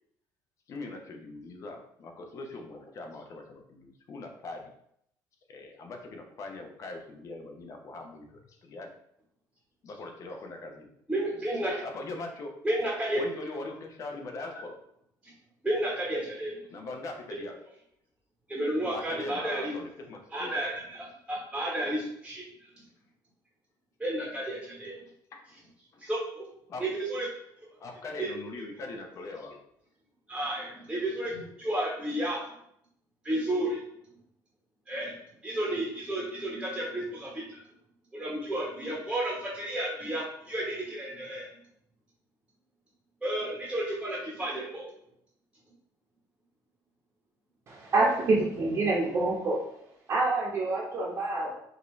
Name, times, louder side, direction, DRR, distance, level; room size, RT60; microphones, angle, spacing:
voice 1, 0.7-4.7 5.5-8.9 9.8-10.9 11.8-12.5 13.2-14.7 16.7-17.6 18.9-20.6 25.3-25.5 25.9-26.1 26.7-26.9 27.8-29.6, left 2 dB, 45° left, 3 dB, 0.8 m, -41 dB
voice 2, 11.1-11.8 12.6-13.2 15.6-16.6 18.5-19.7 20.3-22.4 24.0-24.9 26.0-26.5 26.8-27.3 28.2-28.3 30.3-32.4 33.2-33.8 34.9-35.1 35.4-37.6 38.1-41.5 43.2-44.9, right 1 dB, 5° right, -4 dB, 1.1 m, -32 dB
voice 3, 47.7-49.6 50.1-51.5, right 2 dB, 40° right, -6 dB, 1.0 m, -26 dB
5.2 x 2.7 x 3.1 m, 0.73 s
cardioid pair, 125°, 8 cm